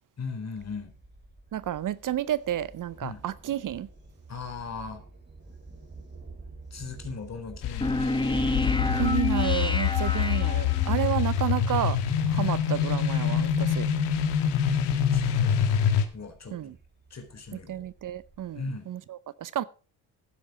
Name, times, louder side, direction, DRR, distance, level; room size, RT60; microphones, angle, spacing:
voice 1, 0.2-0.9 3.0-3.2 4.3-5.0 6.7-8.9 15.1-15.5 15.8-16.8 17.1-17.8 18.6-18.9, left 4 dB, 40° left, 3.8 m, -39 dB
Thunder, 0.6-18.6, right 2 dB, 25° right, 3.8 m, -45 dB
voice 2, 1.5-3.9 8.9-12.0 12.3-13.9 16.5-16.7 17.5-19.6, right 11 dB, 50° right, 0.7 m, -31 dB
sound 1, 7.6-16.0, left 8 dB, 85° left, 1.7 m, -25 dB
sound 2, 7.8-11.1, left 1 dB, 10° left, 1.3 m, -29 dB
11.5 x 9.5 x 4.8 m
supercardioid pair, 70°, 40 cm